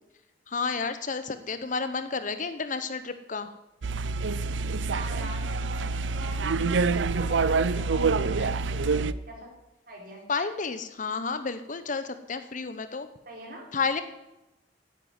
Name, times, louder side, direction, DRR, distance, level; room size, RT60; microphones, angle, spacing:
voice 1, 0.5-3.5 10.3-13.1 13.7-14.0, left 4 dB, 45° left, 11 dB, 0.9 m, -31 dB
sound 1, 3.8-9.1, right 4 dB, 80° right, 0.5 m, -26 dB
voice 2, 4.9-6.5 7.2-9.5 9.9-10.2 13.3-13.7, right 1 dB, 55° right, -1 dB, 4.3 m, -43 dB
9.2 x 9.1 x 9.4 m, 0.97 s
head